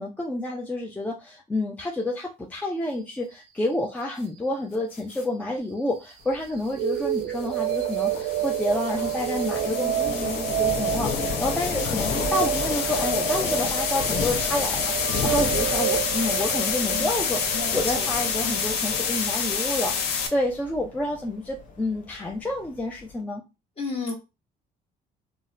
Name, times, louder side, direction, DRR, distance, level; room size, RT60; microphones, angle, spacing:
voice 1, 0.0-23.4, left 1 dB, 10° left, 0 dB, 0.5 m, -29 dB
sound 1, 4.9-5.2 7.4-20.3, left 6 dB, 85° left, 0.6 m, -29 dB
Thunder, 6.2-23.1, left 6 dB, 50° left, 0.7 m, -35 dB
sound 2, 6.7-20.7, right 11 dB, 75° right, 0.6 m, -30 dB
voice 2, 9.7-10.4 16.9-17.2 17.5-18.1 18.4-18.8 23.8-24.1, left 4 dB, 35° left, 1 dB, 1.2 m, -34 dB
3.8 x 2.1 x 2.5 m, 0.27 s
cardioid pair, 110°, 17 cm